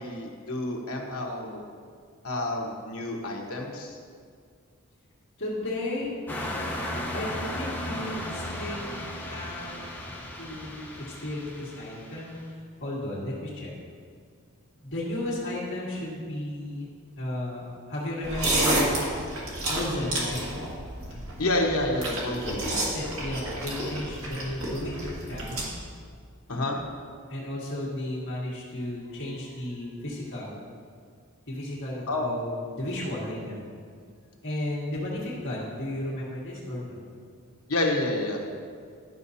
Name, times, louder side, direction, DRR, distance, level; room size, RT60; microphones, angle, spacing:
voice 1, 0.0-1.6 2.2-4.0 21.4-22.9 26.5-26.8 32.1-32.3 37.7-38.4, left 2 dB, 75° left, 0 dB, 1.2 m, -29 dB
voice 2, 5.4-6.1 7.1-9.9 10.3-13.7 14.8-16.9 17.2-19.1 19.7-20.5 21.1-21.2 22.8-25.7 27.3-30.6 31.5-33.6 34.4-37.0, left 1 dB, 60° left, -6 dB, 1.9 m, -34 dB
sound 1, 6.3-12.4, left 1 dB, 10° left, 0.9 m, -35 dB
sound 2, 18.2-25.6, right 1 dB, 65° right, 2.0 m, -30 dB
12.0 x 6.2 x 2.8 m, 2.1 s
head